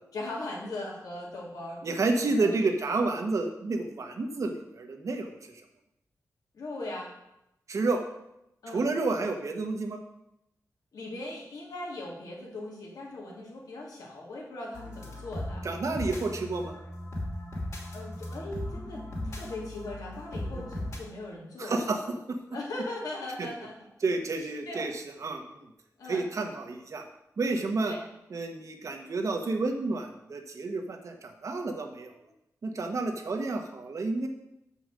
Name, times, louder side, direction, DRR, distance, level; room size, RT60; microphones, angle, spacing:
voice 1, 0.1-2.9 6.5-7.1 8.6-8.8 10.9-15.6 17.9-21.9 22.5-23.7 24.7-24.9 26.0-26.3 27.8-28.0, left 2 dB, 85° left, -3 dB, 2.6 m, -39 dB
voice 2, 1.8-5.5 7.7-8.0 8.7-10.0 15.6-16.7 20.5-20.6 21.6-22.0 23.4-23.5 24.0-25.7 26.1-27.0 27.4-27.9 28.3-32.1 32.6-34.3, right 3 dB, 55° right, 4 dB, 1.1 m, -30 dB
sound 1, 14.7-21.0, left 1 dB, 55° left, 2.8 m, -37 dB
7.0 x 5.6 x 6.2 m, 0.84 s
wide cardioid pair, 140°, 6 cm